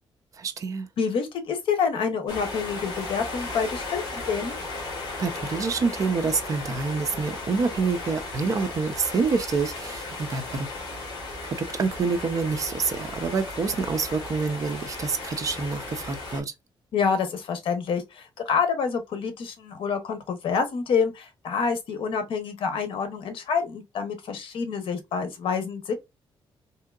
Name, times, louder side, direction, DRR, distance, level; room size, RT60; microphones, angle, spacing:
voice 1, 0.4-0.9 5.2-10.7 11.4-16.5, right 4 dB, 40° right, 0.5 m, -27 dB
voice 2, 1.0-4.6 16.9-25.9, left 6 dB, 70° left, 0.9 m, -27 dB
sound 1, 2.3-16.4, left 2 dB, 45° left, 1.7 m, -36 dB
3.6 x 2.8 x 2.3 m
wide cardioid pair, 170°, 9 cm